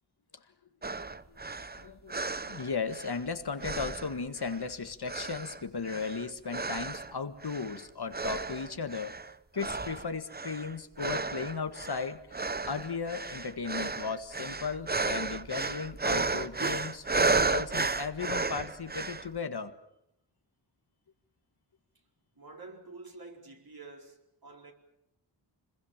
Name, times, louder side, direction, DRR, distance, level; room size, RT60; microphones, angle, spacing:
sound 1, 0.8-3.3 3.6-4.7 5.1-7.1 7.4-7.8 8.1-9.3 9.6-19.3, right 3 dB, 20° right, 0.8 m, -33 dB
voice 1, 1.0-1.4 1.7-9.1 9.5-19.7, left 5 dB, 60° left, 1.8 m, -36 dB
voice 2, 22.3-24.7, right 3 dB, 50° right, 4.7 m, -48 dB
26.0 x 21.5 x 7.4 m
cardioid pair, 60°, 44 cm